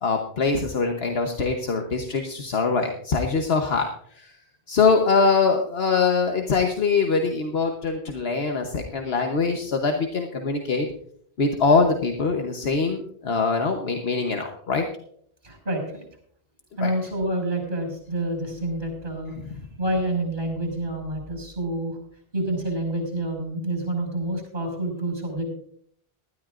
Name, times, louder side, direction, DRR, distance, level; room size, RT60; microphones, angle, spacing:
voice 1, 0.0-3.9 4.2-4.3 4.7-10.9 11.4-14.8 16.8-16.9 19.4-19.6, left 4 dB, 70° left, 3 dB, 1.4 m, -23 dB
voice 2, 15.4-16.0 16.8-19.3 19.8-22.0 22.3-25.4, right 1 dB, 50° right, 2 dB, 6.1 m, -28 dB
19.0 x 13.0 x 2.5 m, 0.63 s
omnidirectional pair, 1.1 m